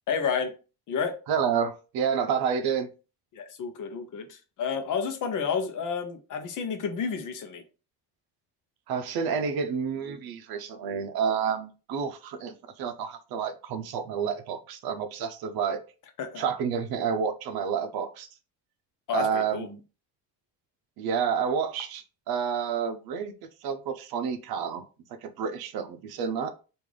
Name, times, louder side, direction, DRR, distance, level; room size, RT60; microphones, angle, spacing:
voice 1, 0.1-0.5 0.9-1.1 3.3-7.6 16.2-16.4 19.1-19.7, left 6 dB, 50° left, 0.7 m, -30 dB
voice 2, 1.3-2.9 8.9-15.8 16.4-18.3 19.1-19.8 21.0-23.3 23.6-24.8 25.2-26.5, right 7 dB, 65° right, 0.6 m, -29 dB
3.2 x 2.5 x 3.7 m
cardioid pair, 180°, 40 cm